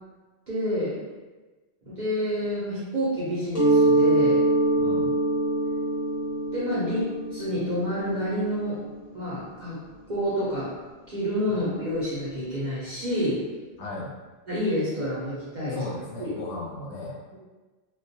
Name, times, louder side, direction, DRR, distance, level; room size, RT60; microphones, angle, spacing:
voice 1, 0.5-0.9 1.8-4.4 6.5-8.8 9.1-9.8 10.1-10.7 11.1-13.4 14.5-15.8 16.2-16.3, equal, 50° right, -9 dB, 0.6 m, -28 dB
Mallet percussion, 3.5-9.1, right 2 dB, 40° left, 0.6 m, -24 dB
voice 2, 4.8-5.1 13.8-14.1 15.7-17.4, left 2 dB, 70° left, -4 dB, 0.8 m, -36 dB
2.2 x 2.2 x 2.6 m, 1.2 s
omnidirectional pair, 1.3 m